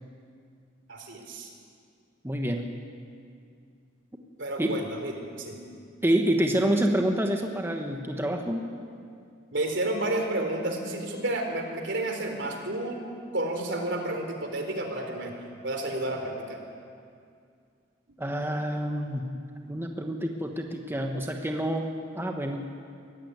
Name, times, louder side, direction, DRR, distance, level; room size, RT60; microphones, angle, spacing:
voice 1, 0.9-1.5 4.4-5.7 8.3-8.4 9.5-13.0 13.3-15.4 15.6-16.6, right 1 dB, 70° right, 3 dB, 3.8 m, -31 dB
voice 2, 2.2-2.7 4.6-4.8 6.0-8.6 18.2-19.3 19.6-21.9 22.1-22.6, right 1 dB, 15° right, 2 dB, 1.3 m, -27 dB
23.0 x 16.5 x 9.5 m, 2.3 s
head